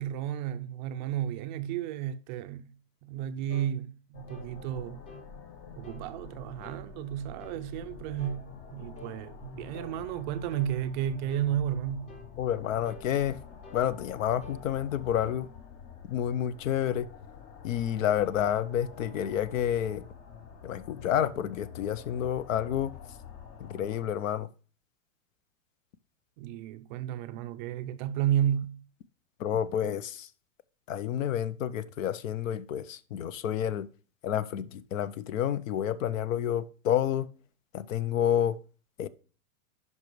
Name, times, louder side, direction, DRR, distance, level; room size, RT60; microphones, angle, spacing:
voice 1, 0.0-2.8 3.0-5.0 5.8-12.2 26.4-28.8, right 10 dB, 35° right, 0.4 m, -32 dB
sound 1, 3.5-3.7 4.3-4.5 5.1-5.3 5.8-6.1 6.6-6.8 7.4-7.6 8.2-8.4 9.0-9.2 9.7-10.0 10.5-10.7 11.3-11.5 12.1-12.3 12.8-13.1 13.6-13.9 14.4-14.7 15.2-15.4, left 1 dB, 15° left, 0.8 m, -49 dB
sound 2, 4.1-24.1, left 7 dB, 45° left, 1.1 m, -47 dB
voice 2, 12.4-13.4 13.7-15.5 16.1-17.1 17.6-20.0 20.6-22.9 23.6-24.5 29.4-30.3 30.9-33.9 34.2-37.3 37.7-38.6 39.0-39.1, left 10 dB, 70° left, 0.7 m, -29 dB
10.5 x 5.4 x 3.1 m
hypercardioid pair, 120°, 41 cm